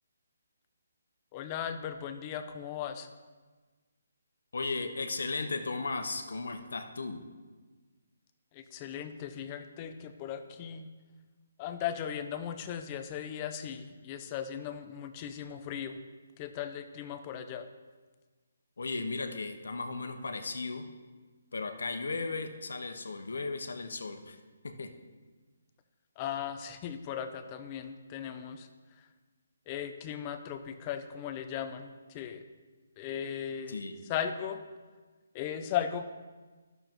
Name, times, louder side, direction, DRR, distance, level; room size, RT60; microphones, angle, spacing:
voice 1, 1.3-3.1 8.5-10.9 11.6-16.0 16.4-17.7 26.2-28.7 29.7-32.4 33.0-33.8 34.1-34.6 35.3-36.0, left 9 dB, 20° left, 8 dB, 0.4 m, -37 dB
voice 2, 4.5-7.2 18.8-20.8 21.5-24.4 24.6-24.9 33.7-34.0, left 3 dB, 75° left, 7 dB, 0.9 m, -36 dB
12.0 x 6.6 x 3.0 m, 1.3 s
hypercardioid pair, 170°, 0 cm